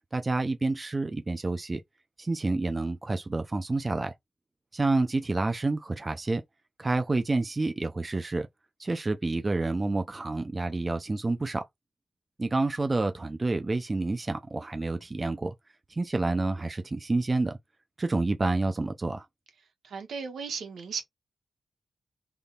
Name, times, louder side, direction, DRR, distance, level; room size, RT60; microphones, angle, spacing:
voice 1, 0.1-1.8 2.2-4.1 4.7-6.4 6.8-8.5 8.8-11.7 12.4-15.5 15.9-17.6 18.0-19.3, right 2 dB, 25° right, 0.6 m, -28 dB
voice 2, 19.8-21.0, right 5 dB, 85° right, 1.6 m, -35 dB
3.6 x 3.5 x 4.1 m
wide cardioid pair, 125°, 0 cm